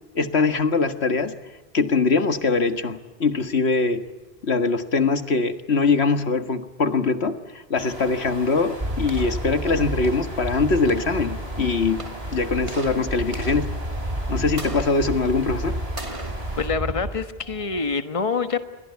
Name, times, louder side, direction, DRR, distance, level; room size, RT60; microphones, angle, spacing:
voice 1, 0.2-1.4 1.7-4.0 4.4-12.0 12.3-13.7 14.3-15.8, left 4 dB, 75° left, 9 dB, 1.9 m, -22 dB
sound 1, 7.8-16.7, right 1 dB, 70° right, 6.8 m, -38 dB
sound 2, 8.8-17.9, right 1 dB, 30° right, 2.4 m, -31 dB
voice 2, 16.6-18.6, left 5 dB, 30° left, 9 dB, 1.5 m, -26 dB
28.5 x 23.0 x 8.4 m, 1.2 s
omnidirectional pair, 1.1 m